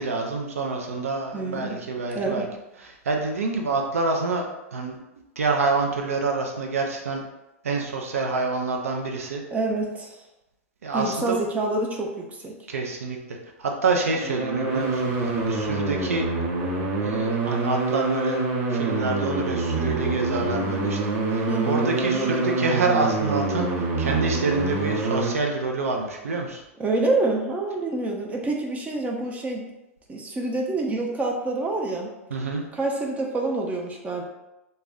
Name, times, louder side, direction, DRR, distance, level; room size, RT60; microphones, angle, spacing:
voice 1, 0.0-2.4 2.8-4.4 4.7-5.0 5.4-7.2 7.6-9.4 10.8-11.4 12.7-16.3 17.0-18.4 18.7-21.0 21.3-26.6 32.3-32.6, right 3 dB, 85° right, 1 dB, 0.4 m, -27 dB
voice 2, 1.3-1.8 2.1-2.5 9.5-10.2 10.9-12.6 21.5-21.9 22.1-22.5 26.8-29.7 30.1-32.1 32.7-34.2, right 2 dB, 20° right, 0 dB, 0.5 m, -27 dB
sound 1, 13.9-25.3, right 3 dB, 55° right, 0.8 m, -26 dB
2.3 x 2.1 x 3.5 m, 0.95 s
hypercardioid pair, 100°, 8 cm